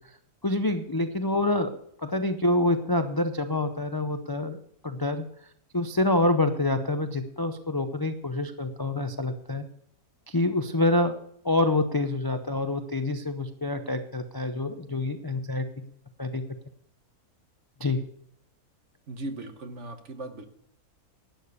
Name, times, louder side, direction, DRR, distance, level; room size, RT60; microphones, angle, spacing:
voice 1, 0.4-1.7 2.0-5.2 5.7-9.7 10.3-11.2 11.4-15.7 16.2-16.4 17.8-18.0, left 2 dB, 35° left, 7 dB, 0.3 m, -26 dB
voice 2, 19.1-20.5, right 2 dB, 55° right, 7 dB, 1.4 m, -38 dB
11.5 x 8.6 x 6.9 m, 0.68 s
omnidirectional pair, 1.6 m